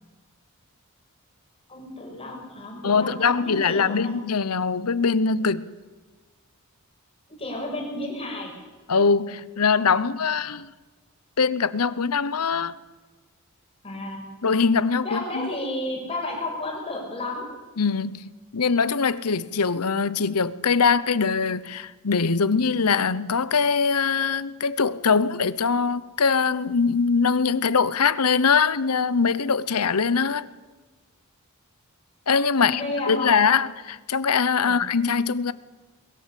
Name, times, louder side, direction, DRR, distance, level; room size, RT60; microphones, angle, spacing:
voice 1, 1.7-4.1 7.4-8.5 13.8-14.2 15.0-17.5 32.6-33.3 34.6-34.8, left 2 dB, 25° left, 6.1 m, -32 dB
voice 2, 2.8-5.7 8.9-10.7 11.4-12.8 14.4-15.5 17.8-30.5 32.3-35.5, left 5 dB, 85° left, 0.9 m, -22 dB
22.0 x 16.5 x 8.4 m
head